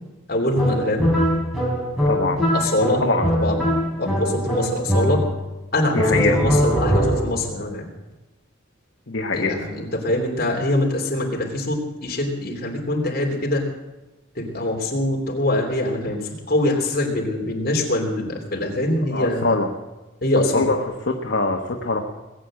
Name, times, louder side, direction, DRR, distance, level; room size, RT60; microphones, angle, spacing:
voice 1, 0.3-1.1 2.5-3.0 3.3-3.7 4.0-5.2 5.7-7.8 9.3-13.6 14.3-19.6 20.2-20.7, left 1 dB, 45° left, 0 dB, 3.2 m, -23 dB
sound 1, 0.6-5.5 5.9-7.5, equal, ahead, 3.8 m, -22 dB
voice 2, 2.1-2.4 3.0-3.3 5.9-6.4 9.1-9.6 19.1-19.7 20.5-20.8 21.1-22.0, left 3 dB, 65° left, 2 dB, 1.2 m, -22 dB
20.0 x 8.5 x 7.5 m, 1.1 s
head